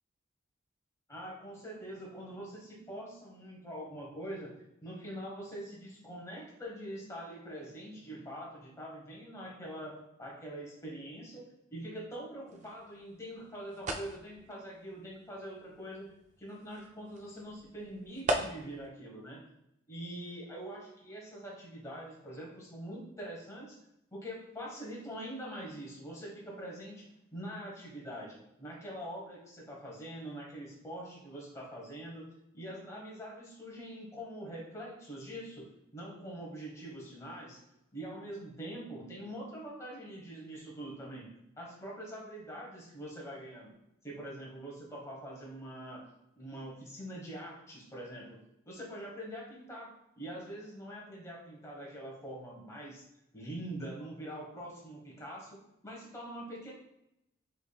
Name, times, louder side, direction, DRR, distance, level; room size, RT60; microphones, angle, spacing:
voice 1, 1.1-16.1 16.4-19.5 19.9-23.8 24.1-27.1 27.3-32.3 32.5-35.7 35.9-37.6 37.9-41.3 41.6-43.7 44.0-46.0 46.4-48.4 48.7-53.0 53.3-55.6 55.8-56.7, right 1 dB, 15° left, -3 dB, 1.1 m, -44 dB
sound 1, 12.5-18.9, right 1 dB, 35° right, 0.4 m, -40 dB
6.0 x 3.4 x 2.3 m, 0.83 s
head